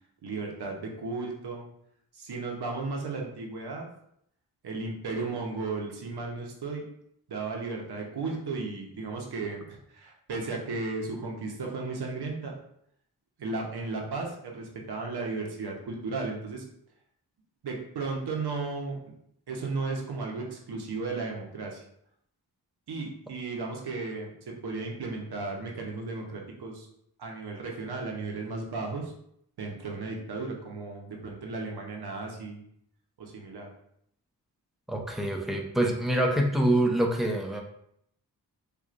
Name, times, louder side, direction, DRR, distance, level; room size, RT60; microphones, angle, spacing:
voice 1, 0.2-1.7 2.1-3.9 4.6-6.8 7.3-12.5 13.4-16.6 17.6-19.0 19.5-21.8 22.9-26.9 27.2-29.1 29.6-32.6 33.2-33.7, right 3 dB, 75° right, 0 dB, 0.9 m, -35 dB
voice 2, 34.9-37.6, right 1 dB, ahead, 0 dB, 0.5 m, -25 dB
4.5 x 2.4 x 2.5 m, 0.71 s
wide cardioid pair, 95°, 39 cm